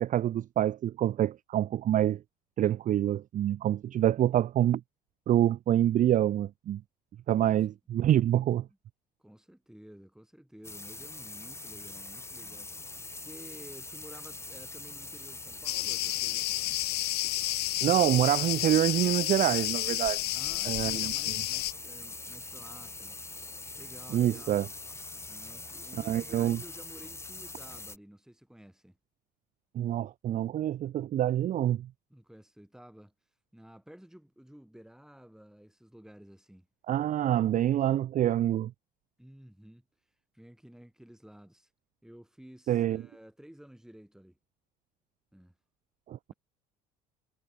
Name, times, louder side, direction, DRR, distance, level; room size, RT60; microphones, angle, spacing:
voice 1, 0.0-2.2 2.6-4.8 5.3-6.8 7.3-8.7 17.8-20.2 20.7-21.0 24.1-24.7 26.0-26.6 29.7-31.9 36.9-38.7 42.7-43.0 46.1-46.3, right 12 dB, 40° right, 0.5 m, -26 dB
voice 2, 9.2-12.8 13.1-16.8 20.3-23.2 23.8-24.6 25.3-29.0 32.1-33.1 33.5-36.7 39.2-39.8 40.3-41.7 42.0-44.4 45.3-45.5, equal, 5° right, 6.7 m, -52 dB
sound 1, 10.6-28.0, left 3 dB, 15° left, 1.1 m, -43 dB
Cricket, 15.7-21.7, left 19 dB, 55° left, 0.4 m, -31 dB
hypercardioid pair, 70°, 20 cm